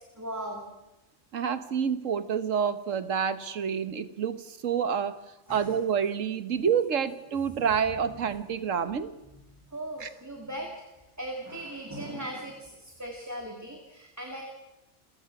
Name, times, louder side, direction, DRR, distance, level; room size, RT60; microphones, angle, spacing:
voice 1, 0.1-0.7 5.5-5.7 9.7-10.8 11.2-14.4, right 1 dB, 15° right, 1 dB, 2.5 m, -38 dB
voice 2, 1.3-5.2 5.5-9.1 10.0-10.1, right 7 dB, 85° right, 11 dB, 1.5 m, -28 dB
29.0 x 15.5 x 6.0 m, 0.99 s
omnidirectional pair, 1.3 m